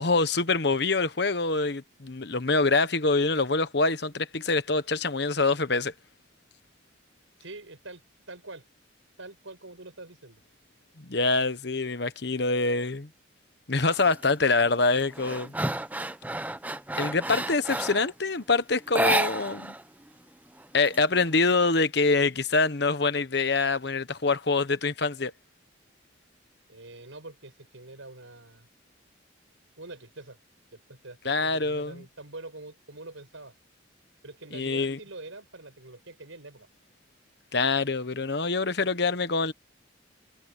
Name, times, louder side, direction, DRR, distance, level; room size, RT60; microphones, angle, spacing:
voice 1, 0.0-5.9 11.0-13.1 13.7-15.5 17.0-19.7 20.7-25.3 31.2-32.0 34.5-35.0 37.5-39.5, left 3 dB, 55° left, 1.2 m, -25 dB
voice 2, 7.4-8.0 8.3-8.6 9.2-10.4 26.7-28.7 29.8-30.4 30.7-33.5 34.2-36.7, right 2 dB, 85° right, 6.2 m, -45 dB
sound 1, 13.9-14.3 14.7-18.1 18.9-19.8 20.1-20.2 20.6-21.5, right 2 dB, 10° right, 0.8 m, -30 dB
head